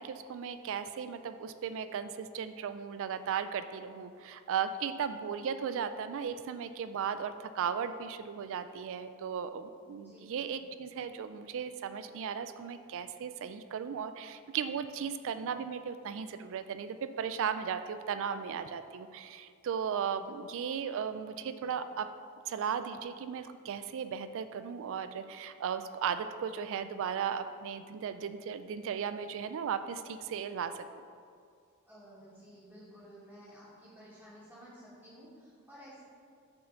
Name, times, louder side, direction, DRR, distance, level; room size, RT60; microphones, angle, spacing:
voice 1, 0.0-22.1 22.5-31.0, right 7 dB, 60° right, 11 dB, 0.3 m, -36 dB
voice 2, 9.9-10.6 21.3-21.7 31.8-36.0, equal, 5° right, -12 dB, 2.0 m, -54 dB
6.6 x 4.8 x 6.4 m, 2.3 s
head